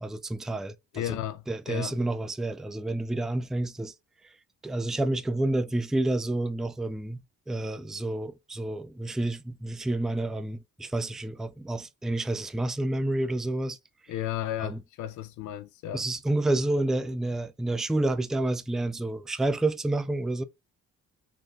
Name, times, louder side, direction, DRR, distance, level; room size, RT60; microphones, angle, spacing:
voice 1, 0.0-1.2 1.5-3.9 4.2-4.3 4.6-13.8 14.6-14.8 15.9-20.4, right 2 dB, ahead, 0.3 m, -29 dB
voice 2, 0.9-2.0 14.1-16.0, left 12 dB, 75° left, 0.5 m, -34 dB
4.0 x 3.1 x 2.5 m
cardioid pair, 90°, 30 cm